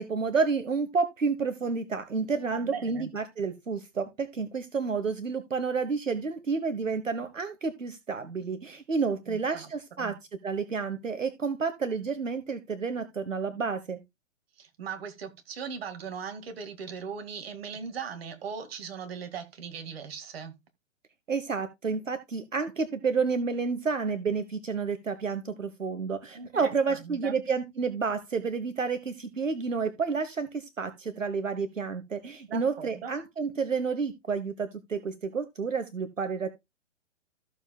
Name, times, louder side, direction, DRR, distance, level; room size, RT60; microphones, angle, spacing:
voice 1, 0.0-10.1 10.4-14.0 21.3-36.5, right 5 dB, 80° right, 1.2 m, -30 dB
voice 2, 2.5-3.1 9.3-9.7 10.0-10.2 14.6-20.5 26.3-27.4 32.5-33.1, right 6 dB, 50° right, 2.2 m, -39 dB
14.0 x 7.2 x 2.3 m
figure-of-eight pair, 120°, 38 cm